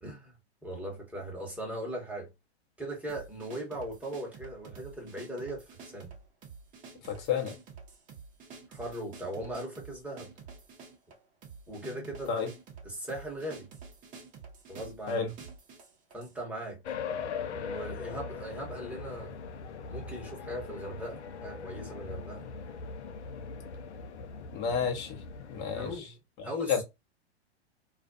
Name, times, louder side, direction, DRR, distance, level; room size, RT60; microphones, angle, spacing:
voice 1, 0.0-0.4 0.6-2.3 2.8-6.1 8.7-10.3 11.7-12.3 12.8-13.7 14.7-15.3 16.1-16.8 17.5-19.4 19.9-22.5 25.7-26.2 26.4-26.8, right 1 dB, 5° right, 1.0 m, -39 dB
sound 1, 3.1-16.4, right 5 dB, 25° right, 0.8 m, -49 dB
voice 2, 7.0-7.6 12.3-12.5 15.1-15.3 24.5-25.2 25.5-26.0 26.4-26.8, left 6 dB, 30° left, 0.9 m, -31 dB
sound 2, 16.8-26.0, left 5 dB, 85° left, 0.6 m, -40 dB
2.4 x 2.4 x 2.4 m
hypercardioid pair, 125°, 33 cm